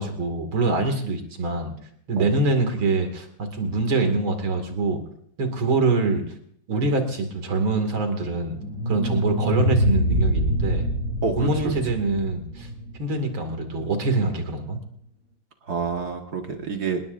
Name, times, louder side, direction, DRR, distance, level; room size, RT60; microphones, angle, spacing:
voice 1, 0.0-1.7 2.1-3.3 3.5-5.0 5.4-6.2 6.7-8.6 8.9-10.9 11.4-12.7 13.0-14.8, right 3 dB, 80° right, 5 dB, 3.2 m, -24 dB
sound 1, 8.4-13.5, equal, 70° left, 6.6 m, -25 dB
voice 2, 11.2-11.7 15.7-17.0, right 5 dB, 50° right, 3 dB, 2.1 m, -28 dB
26.5 x 20.0 x 2.6 m, 0.67 s
omnidirectional pair, 2.2 m